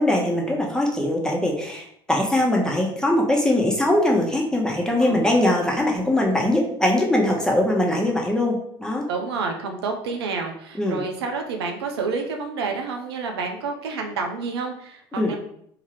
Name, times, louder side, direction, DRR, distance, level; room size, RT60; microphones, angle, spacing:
voice 1, 0.0-9.0 10.8-11.0 15.2-15.3, left 1 dB, 5° left, -1 dB, 1.0 m, -21 dB
voice 2, 9.1-15.4, right 4 dB, 85° right, 3 dB, 0.5 m, -29 dB
3.6 x 2.7 x 3.2 m, 0.69 s
hypercardioid pair, 65°, 13 cm